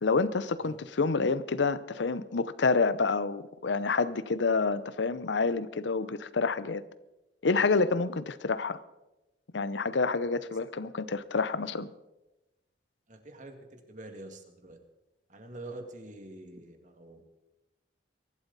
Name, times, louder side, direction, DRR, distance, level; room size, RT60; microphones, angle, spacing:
voice 1, 0.0-6.8 7.4-8.8 9.5-11.9, left 4 dB, 90° left, 15 dB, 0.7 m, -28 dB
voice 2, 13.1-14.8 15.3-17.2, right 2 dB, 45° right, 5 dB, 2.0 m, -46 dB
23.0 x 12.0 x 4.1 m, 0.99 s
head